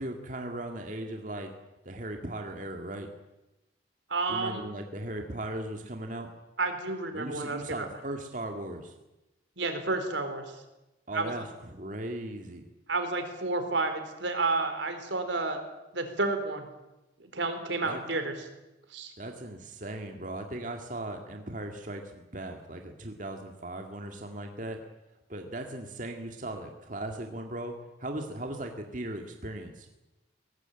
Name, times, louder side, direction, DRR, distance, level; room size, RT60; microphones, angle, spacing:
voice 1, 0.0-1.5 1.8-3.1 4.3-6.3 7.1-8.9 11.1-12.7 17.8-18.0 19.2-24.8 25.3-29.9, right 1 dB, 45° right, 4 dB, 2.0 m, -38 dB
voice 2, 4.1-4.6 6.6-7.9 9.6-10.6 11.1-11.3 12.9-15.6 15.9-16.7 17.2-18.3 18.9-19.1, right 3 dB, 80° right, 7 dB, 4.1 m, -30 dB
22.5 x 18.5 x 9.1 m, 0.99 s
head